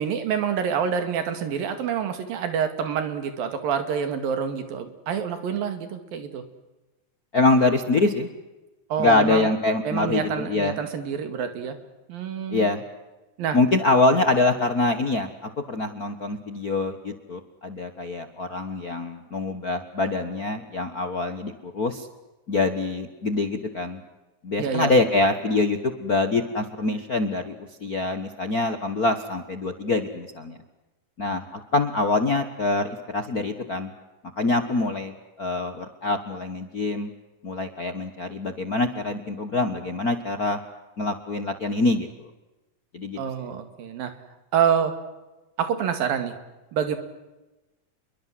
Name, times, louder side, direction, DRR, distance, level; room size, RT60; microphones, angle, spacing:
voice 1, 0.0-6.4 8.9-9.5 9.9-11.8 12.1-12.7 13.4-13.6 24.6-24.9 43.2-44.1 44.5-44.9 45.6-46.3 46.7-47.0, right 7 dB, 85° right, 8 dB, 4.1 m, -27 dB
voice 2, 7.3-8.3 9.0-10.8 12.5-12.8 13.5-15.3 15.7-22.1 22.5-24.0 24.4-30.6 31.2-31.4 31.7-33.9 34.4-35.1 35.4-37.1 37.4-40.6 41.0-42.1 42.9-43.2, left 2 dB, 55° left, 7 dB, 1.0 m, -24 dB
28.0 x 23.0 x 7.7 m, 1.1 s
omnidirectional pair, 4.0 m